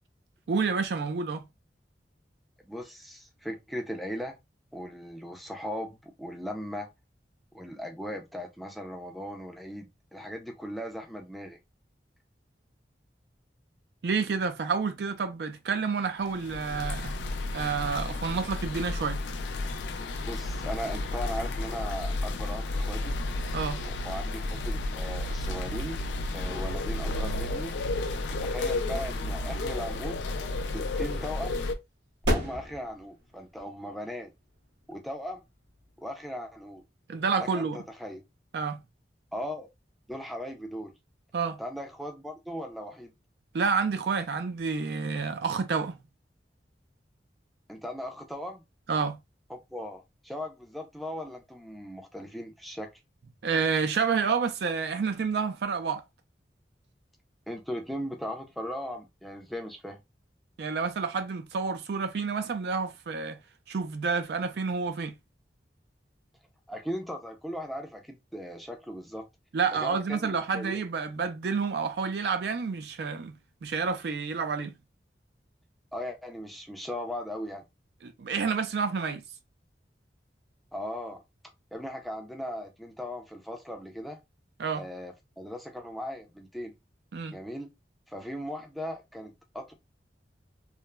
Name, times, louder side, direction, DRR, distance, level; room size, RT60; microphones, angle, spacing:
voice 1, 0.5-1.4 14.0-17.1 17.5-19.2 23.5-23.8 37.1-37.8 38.5-38.8 41.3-41.6 43.5-46.0 48.9-49.2 53.4-56.0 60.6-63.4 63.7-65.1 69.5-73.3 73.6-74.7 78.0-79.2 84.6-84.8 87.1-87.4, right 5 dB, 65° right, 0.4 m, -29 dB
voice 2, 2.6-4.4 4.7-6.9 7.5-9.9 10.1-11.6 20.3-23.2 23.8-26.0 26.3-27.8 28.3-30.3 30.7-31.6 32.3-34.3 34.9-35.4 36.0-36.8 37.4-38.2 39.3-39.7 40.1-40.9 41.6-43.1 47.7-48.6 49.5-52.9 57.5-60.0 66.7-69.3 69.8-70.8 75.9-77.6 80.7-81.2 81.7-84.2 84.7-86.7 87.3-87.7 88.1-89.7, equal, ahead, 0.4 m, -38 dB
sound 1, 16.3-31.7, left 2 dB, 90° left, 0.4 m, -32 dB
sound 2, 31.7-36.9, equal, 85° right, 1.1 m, -37 dB
3.1 x 2.0 x 2.2 m
head